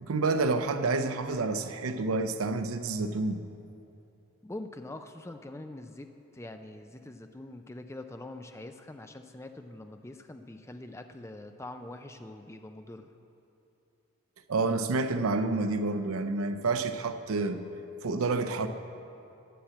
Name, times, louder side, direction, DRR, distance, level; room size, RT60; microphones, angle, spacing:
voice 1, 0.0-3.4 14.5-17.6 18.0-18.7, right 3 dB, 80° right, 9 dB, 0.6 m, -29 dB
voice 2, 4.4-13.1, left 2 dB, 15° left, 7 dB, 0.4 m, -44 dB
10.0 x 6.3 x 7.4 m, 2.8 s
head